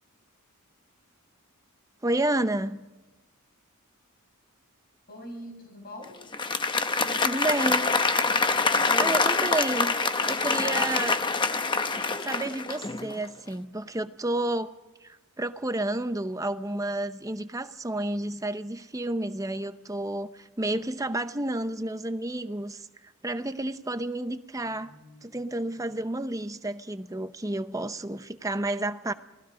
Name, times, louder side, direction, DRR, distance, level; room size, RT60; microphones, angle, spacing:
voice 1, 2.0-2.9 7.2-7.9 8.7-9.9 10.3-11.2 12.2-14.7 15.0-22.9 23.2-24.9 25.2-29.1, right 1 dB, 15° right, 11 dB, 0.7 m, -30 dB
voice 2, 5.1-6.2 7.0-7.8 24.6-26.0, left 1 dB, 45° left, 3 dB, 6.0 m, -45 dB
Applause, 6.2-13.2, left 4 dB, 20° left, 0.8 m, -25 dB
28.5 x 19.0 x 5.1 m, 1.1 s
head